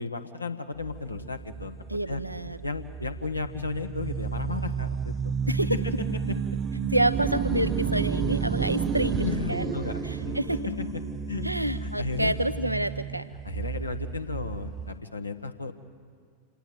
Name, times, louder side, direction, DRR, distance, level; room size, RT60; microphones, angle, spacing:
voice 1, 0.0-1.7 2.1-2.2 2.6-5.8 6.3-6.4 9.2-10.4 11.3-11.4 11.8-12.3 13.4-15.7, left 4 dB, 80° left, 7 dB, 1.4 m, -34 dB
sound 1, 0.8-15.0, right 6 dB, 25° right, 1.2 m, -31 dB
voice 2, 1.9-2.6 5.5-5.8 6.9-9.7 10.0-10.7 11.4-13.2, right 1 dB, 85° right, 13 dB, 0.9 m, -28 dB
27.0 x 19.0 x 7.9 m, 2.1 s
figure-of-eight pair, 90°, 0 cm